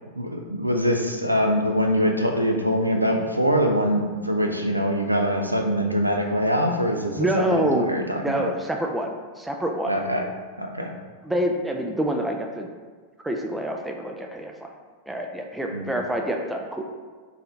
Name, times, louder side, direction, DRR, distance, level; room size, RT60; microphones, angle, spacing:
voice 1, 0.2-8.5 9.9-10.3 10.6-10.9 15.7-15.9, equal, 85° right, 3 dB, 0.4 m, -23 dB
voice 2, 7.2-7.9 8.2-10.0 11.2-12.7 13.2-14.7 15.1-16.8, right 1 dB, 5° right, 2 dB, 0.4 m, -26 dB
4.0 x 3.7 x 2.8 m, 1.5 s
figure-of-eight pair, 90°, 0 cm